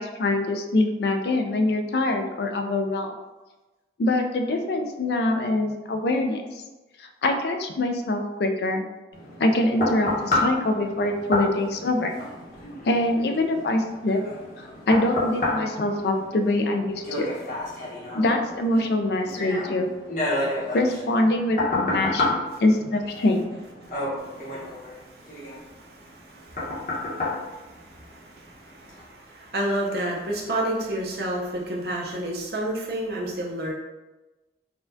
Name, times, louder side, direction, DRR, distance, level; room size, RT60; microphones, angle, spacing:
voice 1, 0.0-3.1 4.0-6.4 7.0-8.8 9.4-12.1 12.8-14.2 14.9-17.3 18.1-19.9 20.7-23.6, left 2 dB, 65° left, 5 dB, 0.4 m, -24 dB
sound 1, 9.1-28.4 28.9-29.0, left 2 dB, 45° left, 0.9 m, -30 dB
voice 2, 23.8-33.7, right 1 dB, 60° right, -2 dB, 0.7 m, -32 dB
4.2 x 2.3 x 2.6 m, 1.1 s
head